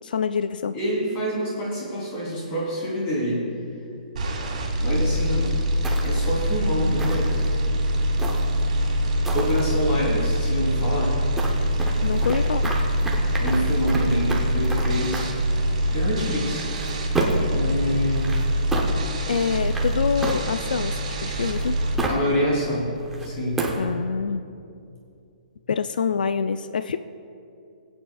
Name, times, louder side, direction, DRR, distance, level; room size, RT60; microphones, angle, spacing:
voice 1, 0.0-0.8 12.0-12.7 19.3-21.8 23.8-24.5 25.7-27.0, left 6 dB, 90° left, 11 dB, 0.4 m, -26 dB
voice 2, 0.7-3.5 4.8-5.5 6.0-7.3 9.3-11.1 13.4-15.3 15.9-16.6 16.9-17.0 17.5-18.3 22.1-23.0 23.2-23.6, equal, 25° left, -5 dB, 3.2 m, -26 dB
sound 1, 4.2-21.9, equal, 55° right, 2.1 m, -24 dB
sound 2, 5.8-6.4 7.0-7.6 8.2-8.7 9.2-9.6 11.3-15.5 16.5-17.5 18.1-18.9 19.7-20.8 21.4-22.3 22.9-23.9, right 2 dB, 5° right, 0.7 m, -31 dB
25.0 x 8.7 x 2.3 m, 2.6 s
hypercardioid pair, 170°, 5 cm